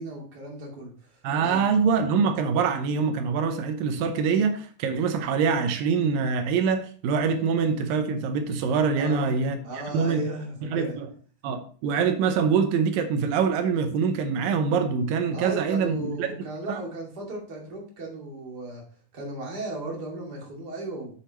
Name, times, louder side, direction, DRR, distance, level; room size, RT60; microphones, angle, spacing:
voice 1, 0.0-1.9 9.0-9.4 9.6-11.0 15.3-18.8 19.1-21.2, right 2 dB, 30° right, -2 dB, 2.7 m, -36 dB
voice 2, 1.2-9.6 9.9-10.2 10.6-11.1 11.4-16.3 16.7-16.8, right 6 dB, 85° right, 7 dB, 2.6 m, -24 dB
8.7 x 7.2 x 3.0 m, 0.43 s
omnidirectional pair, 3.9 m